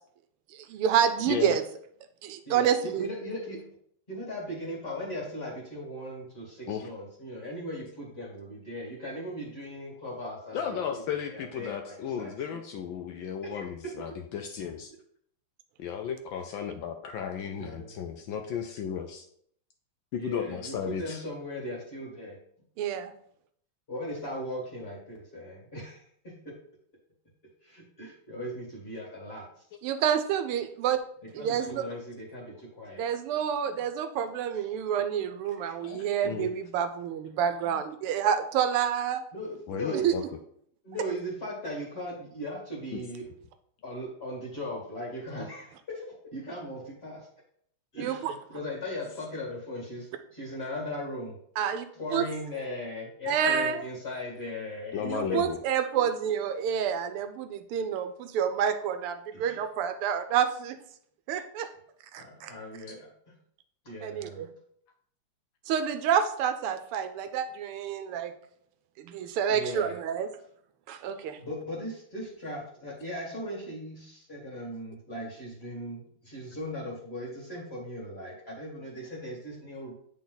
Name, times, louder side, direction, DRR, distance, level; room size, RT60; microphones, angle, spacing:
voice 1, 0.5-1.6 2.2-3.1 22.8-23.1 29.8-31.0 31.3-31.8 33.0-39.2 40.0-40.1 48.0-48.3 51.6-51.8 52.1-52.3 53.3-53.8 55.0-60.8 61.3-61.7 62.1-62.5 64.0-64.5 65.7-68.3 69.0-70.3 70.9-71.4, right 8 dB, 85° right, 9 dB, 1.6 m, -28 dB
voice 2, 1.3-1.6 6.7-6.9 10.5-14.9 15.8-19.2 20.1-21.2 33.7-33.9 35.6-36.5 39.7-40.2 42.9-43.0 54.9-55.6, left 7 dB, 75° left, 6 dB, 1.2 m, -34 dB
voice 3, 2.5-3.6 4.1-12.6 13.4-14.0 17.6-18.0 20.2-22.4 23.9-26.6 27.6-29.6 31.2-33.1 39.3-40.2 40.8-43.3 43.8-47.3 47.9-51.4 51.9-55.4 59.3-59.6 62.2-63.3 63.8-64.4 69.5-70.0 71.4-79.9, equal, 30° left, -2 dB, 2.2 m, -38 dB
8.5 x 4.1 x 3.9 m, 0.66 s
omnidirectional pair, 2.4 m